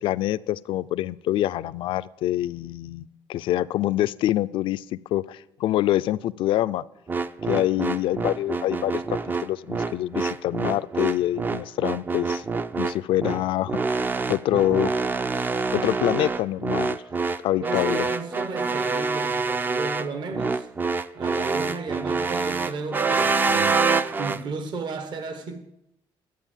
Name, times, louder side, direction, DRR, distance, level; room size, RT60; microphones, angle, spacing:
voice 1, 0.0-6.8 7.5-12.4 12.8-13.8 14.3-14.9 15.7-17.0 17.4-18.1, left 14 dB, 70° left, 0.4 m, -25 dB
sound 1, 7.1-24.4, right 4 dB, 20° right, 0.4 m, -26 dB
voice 2, 17.6-20.7 21.1-23.7 24.2-25.6, right 4 dB, 55° right, 1.2 m, -34 dB
12.0 x 8.6 x 7.3 m
cardioid pair, 140°, 9 cm